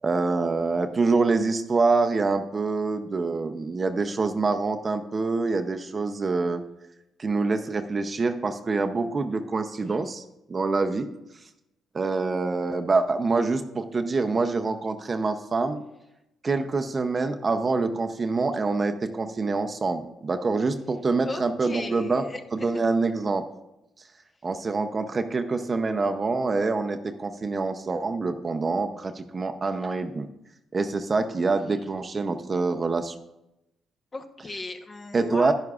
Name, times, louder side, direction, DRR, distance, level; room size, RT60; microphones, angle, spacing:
voice 1, 0.0-6.6 7.2-11.1 11.9-15.8 16.4-22.3 22.5-23.5 24.4-30.3 30.7-33.1 35.1-35.5, right 3 dB, 35° right, 7 dB, 0.6 m, -26 dB
voice 2, 21.2-22.8 34.1-35.5, left 2 dB, 30° left, 5 dB, 1.0 m, -37 dB
10.5 x 10.5 x 2.4 m, 0.90 s
cardioid pair, 90°, 0 cm